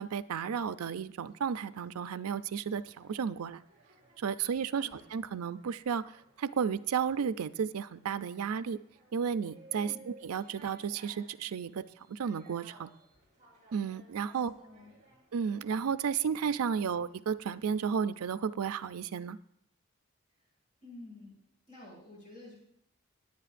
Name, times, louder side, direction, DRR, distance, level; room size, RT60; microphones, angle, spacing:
voice 1, 0.0-3.6 4.2-6.1 6.4-8.8 9.1-12.9 13.7-14.5 15.3-19.4, right 7 dB, 90° right, 13 dB, 0.4 m, -33 dB
sound 1, 1.2-18.1, right 2 dB, 35° right, 4.5 m, -61 dB
voice 2, 14.3-14.9 20.8-21.3 21.7-22.6, left 2 dB, 35° left, -4 dB, 5.6 m, -50 dB
21.0 x 8.8 x 2.5 m, 0.70 s
head